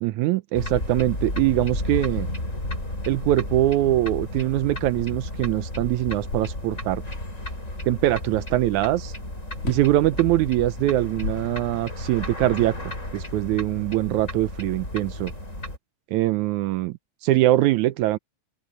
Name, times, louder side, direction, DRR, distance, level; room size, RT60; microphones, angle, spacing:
voice 1, 0.0-2.3 3.1-7.0 7.9-9.1 9.6-12.7 13.1-15.3 16.1-18.2, right 16 dB, 80° right, 2.0 m, -23 dB
sound 1, 0.5-15.8, left 1 dB, 25° left, 7.1 m, -33 dB
sound 2, 9.5-10.0 10.8-12.1, left 5 dB, 55° left, 3.0 m, -35 dB
open air
omnidirectional pair, 3.5 m